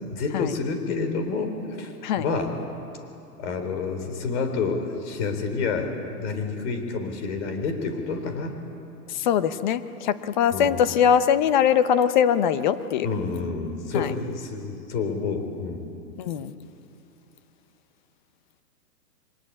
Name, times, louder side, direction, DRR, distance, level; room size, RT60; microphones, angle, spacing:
voice 1, 0.1-2.5 3.4-8.6 10.5-10.8 13.0-15.8, left 4 dB, 45° left, 6 dB, 4.1 m, -29 dB
voice 2, 9.1-13.1 13.9-14.1 16.2-16.5, left 8 dB, 30° left, 12 dB, 0.8 m, -22 dB
24.5 x 20.5 x 9.7 m, 2.8 s
hypercardioid pair, 155°, 48 cm